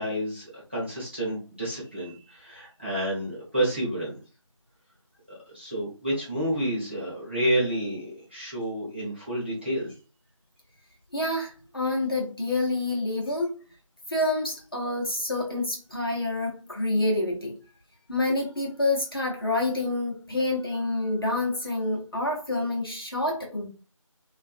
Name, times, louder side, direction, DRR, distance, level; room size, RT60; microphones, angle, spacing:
voice 1, 0.0-4.2 5.5-9.9, right 1 dB, 20° right, -7 dB, 0.8 m, -29 dB
voice 2, 11.1-13.6 14.1-17.6 18.1-23.7, left 2 dB, 45° left, -1 dB, 0.7 m, -27 dB
2.3 x 2.2 x 2.4 m, 0.34 s
figure-of-eight pair, 175°, 17 cm